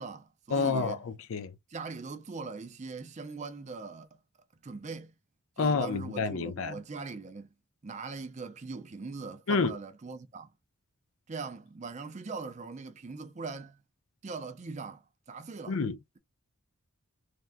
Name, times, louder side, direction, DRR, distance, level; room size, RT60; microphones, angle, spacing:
voice 1, 0.0-1.0 1.7-4.2 4.6-5.1 5.6-7.5 7.8-10.5 11.3-13.8 14.2-15.8, right 4 dB, 30° right, 0.4 m, -41 dB
voice 2, 0.5-1.5 5.6-6.8 9.5-9.7 15.7-16.2, left 4 dB, 60° left, 0.5 m, -29 dB
3.4 x 2.2 x 2.5 m
head